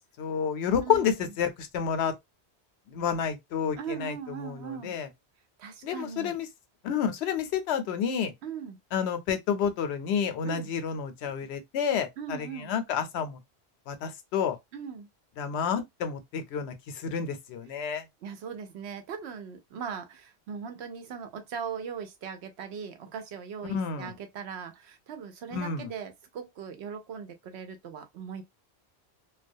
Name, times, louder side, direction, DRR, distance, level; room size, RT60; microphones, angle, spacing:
voice 1, 0.2-2.1 2.9-5.1 5.8-6.5 6.8-8.3 8.9-12.1 12.4-13.4 13.9-14.6 15.4-18.0 23.7-24.1 25.5-25.9, left 7 dB, 80° left, 0.8 m, -30 dB
voice 2, 0.8-1.3 3.8-4.9 5.6-6.4 8.4-8.8 10.4-10.7 12.2-12.7 14.7-15.1 17.7-17.8 18.2-28.4, right 7 dB, 80° right, 0.9 m, -39 dB
2.3 x 2.1 x 2.6 m
omnidirectional pair, 1.1 m